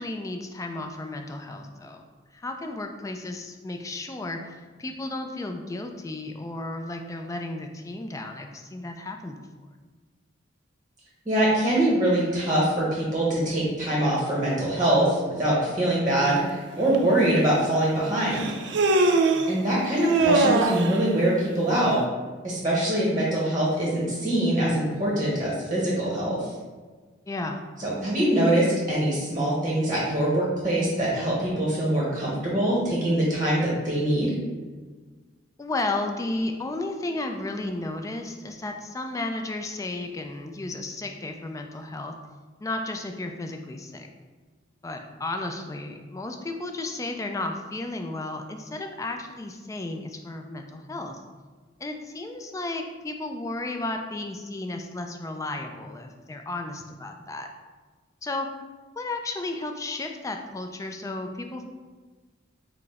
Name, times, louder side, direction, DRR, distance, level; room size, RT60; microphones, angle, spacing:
voice 1, 0.0-2.0 2.3-9.5 19.1-19.6 27.3-27.6 35.6-42.1 42.6-44.1 44.8-51.2 51.8-57.5 58.2-58.5 59.0-61.6, left 2 dB, 15° left, 4 dB, 0.3 m, -33 dB
voice 2, 11.2-18.5 19.5-22.0 22.4-26.5 27.8-34.3, right 1 dB, 20° right, -6 dB, 0.9 m, -23 dB
Human voice, 16.9-17.0 18.3-19.5 20.0-21.0, right 3 dB, 60° right, 0.4 m, -21 dB
4.8 x 2.1 x 4.7 m, 1.4 s
head